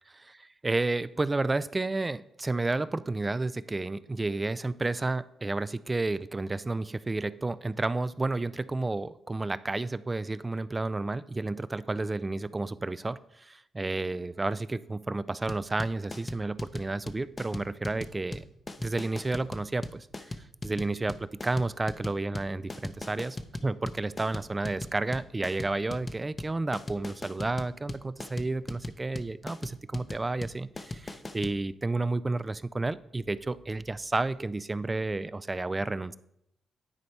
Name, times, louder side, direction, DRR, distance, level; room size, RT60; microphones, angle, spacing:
voice 1, 0.6-18.4 18.8-20.4 20.6-36.2, right 2 dB, 25° right, 17 dB, 0.3 m, -31 dB
sound 1, 15.5-31.6, left 2 dB, 30° left, 0.7 m, -39 dB
9.7 x 4.1 x 4.6 m, 0.78 s
cardioid pair, 75°, 0 cm